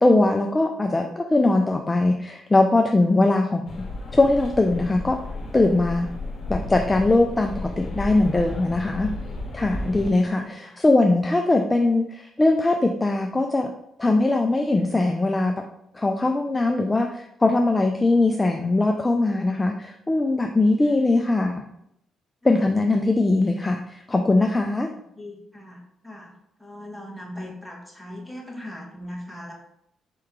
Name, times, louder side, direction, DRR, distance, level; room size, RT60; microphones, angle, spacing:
voice 1, 0.0-3.6 4.1-5.2 5.5-6.1 6.5-9.1 9.5-13.7 14.0-15.5 15.9-21.6 22.4-24.9, left 2 dB, 20° left, 3 dB, 0.4 m, -21 dB
sound 1, 3.7-10.1, left 2 dB, 45° left, 1.5 m, -33 dB
voice 2, 10.1-10.8 20.8-21.0 22.4-22.6 25.2-26.3 26.6-29.5, left 1 dB, ahead, -2 dB, 1.3 m, -40 dB
4.6 x 3.0 x 3.6 m, 0.78 s
cardioid pair, 90°, 0 cm